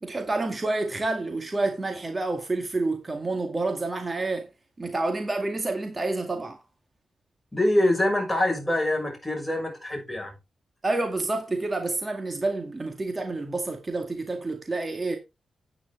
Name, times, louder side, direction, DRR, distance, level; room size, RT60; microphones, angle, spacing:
voice 1, 0.0-4.5 4.8-6.6 10.8-15.2, right 2 dB, 30° right, 2.0 m, -28 dB
voice 2, 7.5-10.3, left 1 dB, 10° left, 6.5 m, -24 dB
9.9 x 9.4 x 3.6 m
cardioid pair, 55°, 0 cm